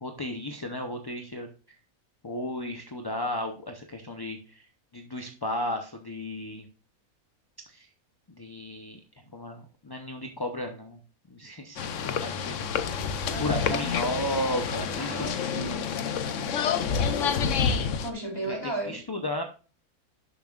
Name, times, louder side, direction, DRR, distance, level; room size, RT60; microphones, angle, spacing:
voice 1, 0.0-1.8 2.2-4.7 4.9-6.7 7.7-7.9 8.4-9.0 9.3-11.0 11.3-13.1 13.3-15.3 18.4-19.4, left 1 dB, 30° left, 4 dB, 0.4 m, -34 dB
sound 1, 11.8-18.1, left 6 dB, 65° left, 1.0 m, -28 dB
voice 2, 13.3-14.0 15.0-15.9 18.0-19.0, right 2 dB, 15° right, -2 dB, 3.6 m, -34 dB
11.0 x 7.1 x 2.4 m, 0.36 s
omnidirectional pair, 1.5 m